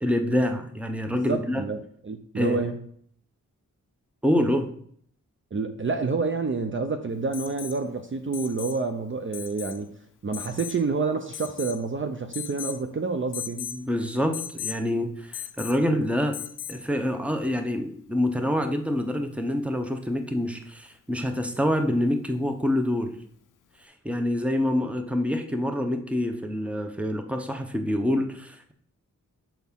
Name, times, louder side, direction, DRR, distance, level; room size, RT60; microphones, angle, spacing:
voice 1, 0.0-1.6 2.3-2.6 4.2-4.7 13.6-16.4 16.7-23.1 24.0-28.7, left 1 dB, 5° right, 6 dB, 0.8 m, -26 dB
voice 2, 1.1-2.8 5.5-9.9 10.2-13.6, right 4 dB, 40° right, 5 dB, 0.5 m, -28 dB
Alarm, 7.3-7.8 8.3-8.8 9.3-9.8 10.3-10.8 11.3-11.8 12.3-12.8 13.3-13.8 14.3-14.8 15.3-15.8 16.3-16.8 18.6-18.7, left 10 dB, 70° left, 0.5 m, -37 dB
7.1 x 4.1 x 3.6 m, 0.63 s
cardioid pair, 50°, 33 cm